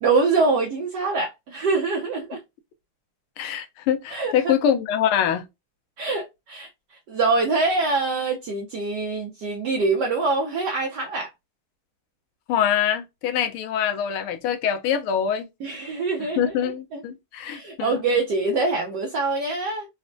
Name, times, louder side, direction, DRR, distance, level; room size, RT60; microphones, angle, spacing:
voice 1, 0.0-2.4 4.1-4.5 6.0-6.7 7.1-11.3 15.6-16.5 16.9-17.0 17.4-19.9, right 3 dB, 70° right, 1.1 m, -24 dB
voice 2, 3.4-5.5 12.5-15.5 16.2-18.0, left 9 dB, 85° left, 1.5 m, -24 dB
4.1 x 2.0 x 2.5 m
omnidirectional pair, 2.3 m